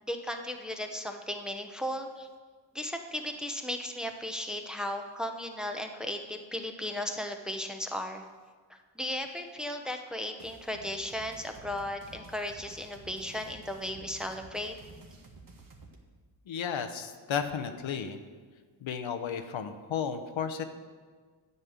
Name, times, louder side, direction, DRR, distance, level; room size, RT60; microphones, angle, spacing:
voice 1, 0.0-2.3 2.7-8.2 8.7-14.7, left 1 dB, ahead, 4 dB, 0.9 m, -36 dB
sound 1, 10.4-16.0, right 3 dB, 45° right, 1.6 m, -52 dB
voice 2, 16.5-18.2 18.8-20.6, left 7 dB, 80° left, 8 dB, 0.9 m, -33 dB
9.7 x 5.4 x 8.0 m, 1.5 s
cardioid pair, 85°, 46 cm